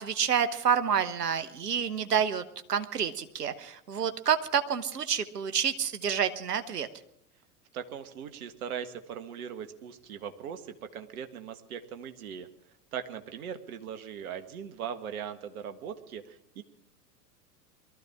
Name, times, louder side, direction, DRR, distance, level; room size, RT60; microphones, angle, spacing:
voice 1, 0.0-2.4 2.7-6.9, right 7 dB, 75° right, 10 dB, 1.3 m, -28 dB
voice 2, 7.7-12.5 12.9-16.6, right 8 dB, 60° right, 8 dB, 1.7 m, -40 dB
22.5 x 14.0 x 3.6 m, 0.76 s
figure-of-eight pair, 90°, 47 cm